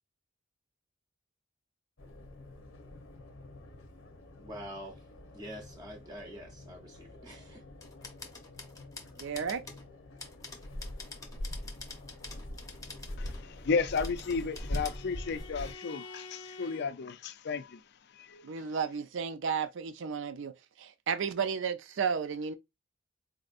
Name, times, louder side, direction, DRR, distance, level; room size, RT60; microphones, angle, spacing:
sound 1, 2.0-15.7, left 1 dB, 75° left, 0.8 m, -44 dB
voice 1, 4.4-5.1 5.3-7.6, equal, 20° right, 0.6 m, -45 dB
sound 2, 7.8-9.9 10.2-13.4 13.9-15.0 15.7-15.8, left 4 dB, 15° left, 0.7 m, -48 dB
voice 2, 9.2-9.6 18.4-20.5 20.8-22.5, right 6 dB, 65° right, 0.4 m, -33 dB
voice 3, 13.2-17.8 18.2-18.5, left 5 dB, 55° left, 0.5 m, -33 dB
Bowed string instrument, 13.4-16.9, left 3 dB, 90° left, 1.1 m, -50 dB
4.1 x 2.5 x 2.5 m
head